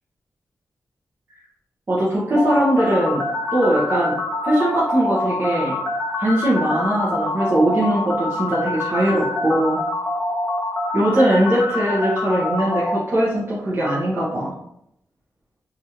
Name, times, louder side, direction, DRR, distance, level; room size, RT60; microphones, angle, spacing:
voice 1, 1.9-3.2 3.5-4.2 4.4-5.8 6.2-9.8 10.9-14.5, right 1 dB, 35° right, -7 dB, 0.8 m, -20 dB
sound 1, 2.4-13.0, left 2 dB, 75° left, 0.5 m, -25 dB
3.0 x 2.4 x 2.9 m, 0.74 s
wide cardioid pair, 95°, 6 cm